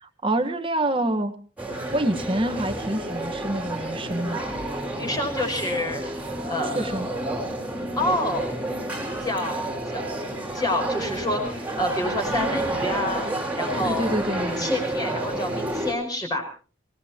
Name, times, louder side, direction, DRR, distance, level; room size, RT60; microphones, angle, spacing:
voice 1, 0.0-1.3 1.9-4.4 6.7-7.1 13.7-14.7, right 1 dB, 25° right, 9 dB, 1.3 m, -26 dB
sound 1, 1.6-15.9, right 1 dB, 5° right, 4.0 m, -30 dB
voice 2, 5.0-6.0 6.5-6.8 8.0-8.5 9.2-10.0 10.5-13.3 13.6-14.1 14.6-16.4, left 1 dB, 20° left, 4 dB, 5.2 m, -27 dB
26.5 x 18.5 x 2.9 m, 0.39 s
head